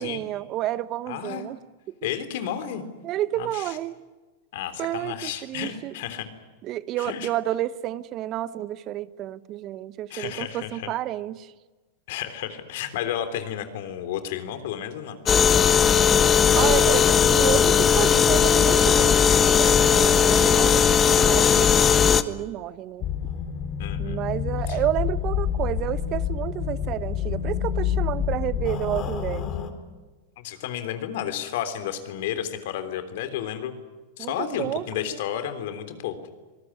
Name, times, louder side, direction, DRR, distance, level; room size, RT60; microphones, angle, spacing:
voice 1, 0.0-1.6 3.0-3.9 4.8-5.9 6.6-11.5 16.5-23.0 24.0-29.5 34.2-35.2, right 13 dB, 40° right, 16 dB, 1.0 m, -30 dB
voice 2, 1.1-1.5 2.0-2.8 3.4-3.8 4.5-6.3 7.0-7.3 10.1-10.9 12.1-15.2 23.8-24.2 24.7-24.8 30.4-33.7 34.2-36.2, left 10 dB, 65° left, 9 dB, 3.4 m, -32 dB
sound 1, 15.3-22.2, left 7 dB, 25° left, 1.2 m, -18 dB
sound 2, 23.0-29.7, left 8 dB, 40° left, 3.7 m, -28 dB
26.0 x 19.5 x 9.9 m, 1.3 s
hypercardioid pair, 110°, 0 cm